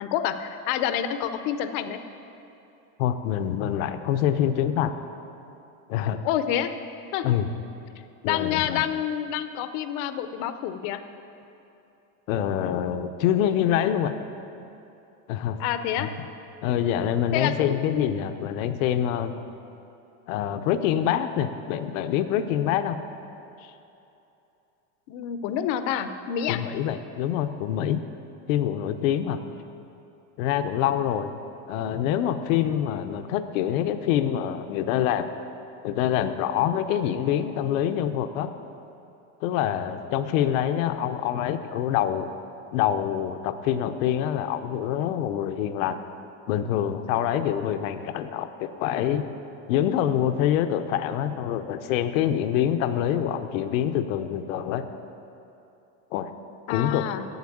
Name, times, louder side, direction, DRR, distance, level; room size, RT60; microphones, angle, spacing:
voice 1, 0.0-2.0 6.1-6.7 7.1-7.3 8.2-11.0 15.6-16.1 17.3-18.1 25.1-26.6 56.7-57.2, left 10 dB, 50° left, 10 dB, 0.6 m, -28 dB
voice 2, 3.0-4.9 5.9-6.2 7.2-7.5 8.2-8.8 12.3-14.1 15.3-15.6 16.0-16.1 16.6-19.3 20.3-23.0 23.6-23.7 26.5-28.0 28.5-29.4 30.4-31.3 31.7-35.3 35.8-38.5 39.4-42.3 42.7-46.0 46.5-49.2 49.7-54.8 56.1-56.3 56.7-57.0, left 10 dB, 85° left, 9 dB, 0.8 m, -25 dB
8.1 x 8.0 x 8.6 m, 2.9 s
cardioid pair, 170°, 39 cm